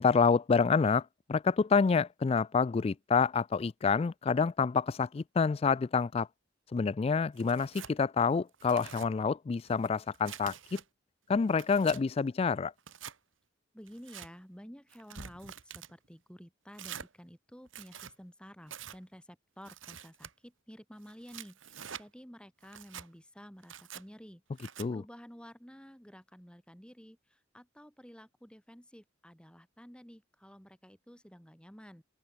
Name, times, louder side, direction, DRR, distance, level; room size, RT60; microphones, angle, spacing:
voice 1, 0.0-6.3 6.7-10.8 11.3-12.7 24.8-25.0, left 5 dB, 30° left, 0.3 m, -28 dB
Tearing, 7.4-7.9 8.5-9.1 9.7-10.8 11.3-12.0 12.8-13.2 13.9-14.3 14.9-15.9 16.7-17.1 17.6-18.1 18.7-19.0 19.6-20.3 21.0-22.0 22.6-23.1 23.6-24.0 24.6-24.9, right 8 dB, 90° right, 1.8 m, -47 dB
voice 2, 13.7-32.0, equal, 5° left, 6.2 m, -52 dB
open air
head